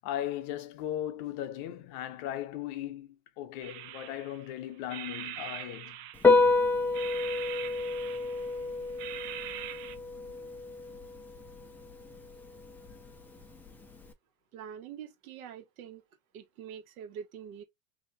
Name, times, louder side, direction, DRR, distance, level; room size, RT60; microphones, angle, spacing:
voice 1, 0.0-6.0, left 12 dB, 55° left, 0.8 m, -37 dB
sound 1, 3.6-4.5 4.9-6.5 6.9-8.6 9.0-10.0, right 13 dB, 50° right, 0.8 m, -42 dB
Piano, 6.1-14.1, left 3 dB, 5° left, 0.4 m, -30 dB
voice 2, 14.5-16.0 16.3-17.6, right 8 dB, 80° right, 1.5 m, -45 dB
3.0 x 2.8 x 4.0 m
supercardioid pair, 135°, 42 cm